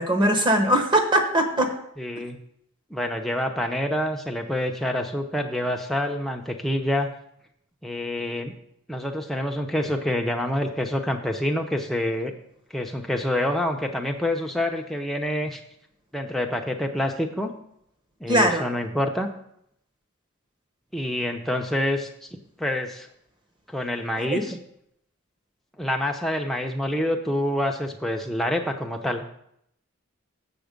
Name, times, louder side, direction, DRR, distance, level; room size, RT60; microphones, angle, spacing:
voice 1, 0.0-1.7 18.3-18.6 24.2-24.4, right 1 dB, 20° right, 4 dB, 1.0 m, -21 dB
voice 2, 2.0-2.4 2.9-7.1 7.8-8.5 8.9-12.3 12.7-15.6 16.1-17.6 18.2-19.3 20.9-23.1 23.7-24.6 25.8-29.2, left 1 dB, ahead, 2 dB, 0.7 m, -27 dB
7.1 x 7.1 x 5.2 m, 0.73 s
head